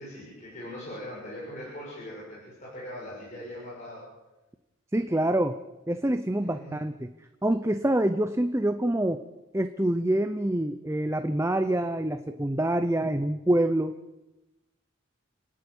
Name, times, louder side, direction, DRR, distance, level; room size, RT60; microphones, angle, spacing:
voice 1, 0.0-4.0 6.4-6.8, left 1 dB, 35° left, -6 dB, 7.4 m, -41 dB
voice 2, 4.9-5.6 5.9-7.1 7.4-9.2 9.5-14.0, right 1 dB, 15° right, 9 dB, 0.6 m, -26 dB
30.0 x 11.0 x 8.7 m, 1.0 s
head